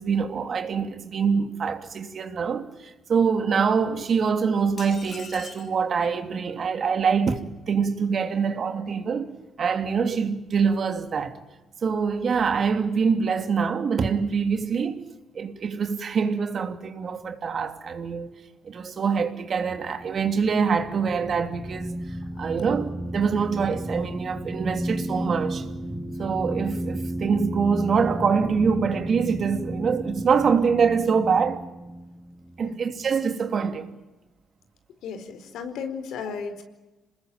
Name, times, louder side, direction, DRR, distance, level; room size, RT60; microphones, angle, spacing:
voice 1, 0.0-11.4 11.8-15.0 15.3-18.3 18.6-22.0 22.4-25.7 26.2-31.7 32.6-33.9, right 6 dB, 50° right, 2.8 m, -25 dB
sound 1, 4.8-5.8, left 5 dB, 50° left, 4.1 m, -42 dB
sound 2, 19.8-33.3, right 1 dB, 5° left, 2.0 m, -33 dB
voice 2, 35.0-36.6, left 6 dB, 80° left, 4.4 m, -34 dB
27.0 x 20.5 x 9.0 m
cardioid pair, 90°, 0 cm